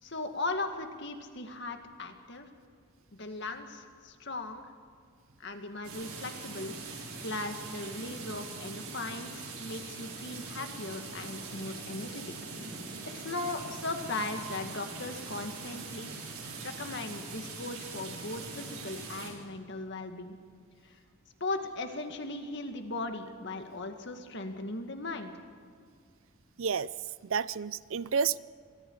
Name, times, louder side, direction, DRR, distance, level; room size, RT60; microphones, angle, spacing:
voice 1, 0.0-2.5 3.2-4.7 5.4-6.7 7.2-12.4 13.1-16.1 16.6-20.4 20.8-21.0 21.4-25.3, left 2 dB, 55° left, 5 dB, 2.1 m, -38 dB
sound 1, 5.8-19.3, right 3 dB, 85° right, 6.0 m, -42 dB
voice 2, 27.2-28.4, right 6 dB, 65° right, 18 dB, 0.5 m, -30 dB
29.0 x 24.5 x 4.8 m, 2.1 s
head